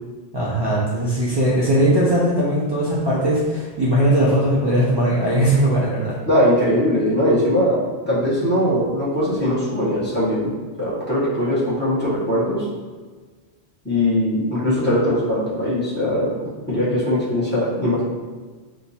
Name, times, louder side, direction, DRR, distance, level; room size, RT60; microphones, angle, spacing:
voice 1, 0.3-6.1, right 1 dB, 40° right, -6 dB, 0.4 m, -19 dB
voice 2, 6.3-7.8 8.1-10.5 10.8-12.7 13.8-18.0, left 1 dB, 10° left, -10 dB, 1.0 m, -20 dB
2.8 x 2.2 x 3.9 m, 1.4 s
omnidirectional pair, 1.1 m